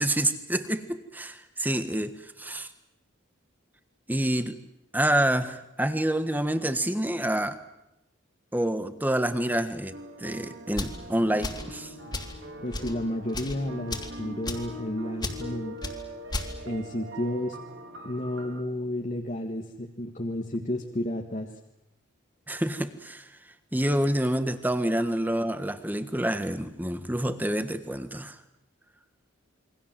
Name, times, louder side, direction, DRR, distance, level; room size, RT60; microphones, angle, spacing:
voice 1, 0.0-2.7 4.1-4.6 4.9-7.6 8.5-11.9 22.5-23.3 23.7-28.4, right 1 dB, 10° right, 10 dB, 1.5 m, -27 dB
sound 1, 9.9-18.6, right 1 dB, 60° right, 3.4 m, -42 dB
sound 2, 10.8-11.0 11.4-11.7 12.1-12.4 12.7-12.9 13.3-13.6 13.9-14.1 14.5-14.7 15.2-15.4 15.8-16.0 16.3-16.5, left 2 dB, 20° left, 2.9 m, -33 dB
voice 2, 12.6-15.8 16.6-17.6 18.0-21.5, left 1 dB, 35° left, 2 dB, 1.6 m, -31 dB
28.0 x 23.5 x 7.6 m, 0.87 s
head